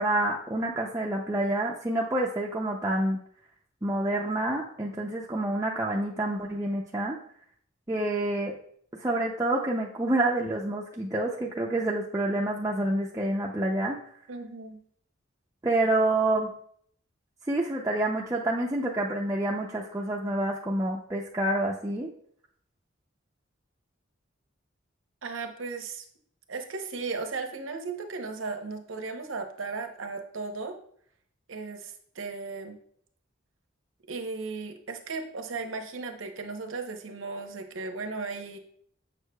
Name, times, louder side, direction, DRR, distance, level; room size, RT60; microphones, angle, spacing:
voice 1, 0.0-3.2 3.8-7.2 7.9-8.5 9.0-14.0 15.6-16.5 17.5-22.1, right 1 dB, 15° right, -2 dB, 0.4 m, -28 dB
voice 2, 14.3-14.8 25.2-26.1 26.5-30.8 31.5-32.8 34.1-38.6, right 4 dB, 85° right, 6 dB, 0.8 m, -36 dB
7.2 x 6.3 x 2.2 m, 0.63 s
head